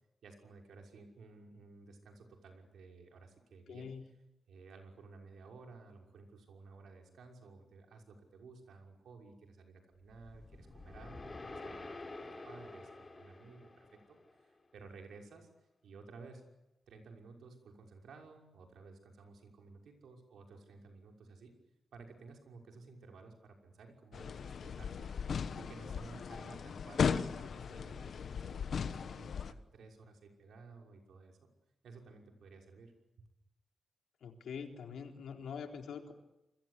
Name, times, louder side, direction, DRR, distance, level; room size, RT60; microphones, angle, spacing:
voice 1, 0.2-3.9 4.5-11.8 12.0-12.1 12.4-15.5 15.8-16.4 16.9-21.5 21.9-25.1 25.6-31.4 31.8-32.9 33.2-33.3, right 4 dB, 85° right, 2 dB, 5.9 m, -55 dB
voice 2, 3.7-4.0 34.2-36.1, left 6 dB, 90° left, 3 dB, 3.8 m, -44 dB
sound 1, 10.1-14.4, left 2 dB, 20° left, 3.9 m, -49 dB
sound 2, 24.1-29.5, left 6 dB, 55° left, 1.2 m, -37 dB
28.0 x 22.0 x 8.4 m, 0.92 s
wide cardioid pair, 170°, 0 cm